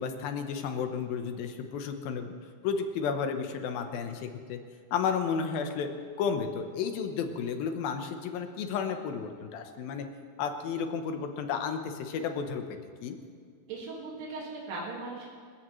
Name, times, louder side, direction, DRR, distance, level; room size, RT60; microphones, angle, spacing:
voice 1, 0.0-2.3 2.6-4.6 4.9-5.9 6.2-10.1 10.4-12.6 13.0-13.2, left 6 dB, 90° left, 6 dB, 2.9 m, -32 dB
voice 2, 13.7-15.3, right 3 dB, 75° right, -5 dB, 3.8 m, -38 dB
27.0 x 16.0 x 3.2 m, 2.1 s
omnidirectional pair, 4.0 m